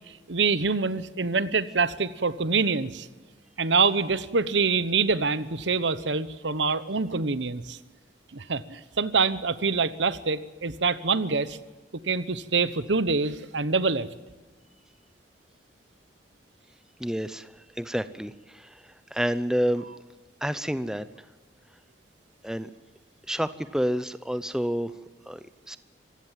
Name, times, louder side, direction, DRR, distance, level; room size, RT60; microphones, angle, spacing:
voice 1, 0.3-3.1 3.6-7.8 8.3-11.6 12.0-14.1, right 4 dB, 90° right, 15 dB, 1.1 m, -25 dB
voice 2, 17.0-17.5 17.8-18.7 19.1-19.8 20.4-21.1 22.4-22.7 23.3-24.9 25.3-25.8, equal, 5° right, 13 dB, 0.7 m, -29 dB
26.0 x 16.0 x 7.5 m, 1.2 s
head